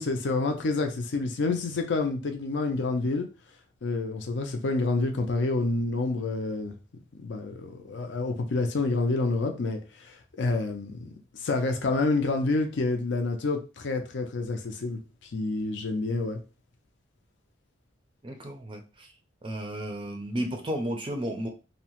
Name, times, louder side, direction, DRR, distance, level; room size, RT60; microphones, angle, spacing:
voice 1, 0.0-3.3 3.8-6.8 7.1-11.1 11.4-15.0 15.3-16.4, left 3 dB, 70° left, 0.5 m, -28 dB
voice 2, 18.2-19.1 19.4-21.5, equal, 25° right, 0.4 m, -33 dB
2.7 x 2.1 x 2.9 m
head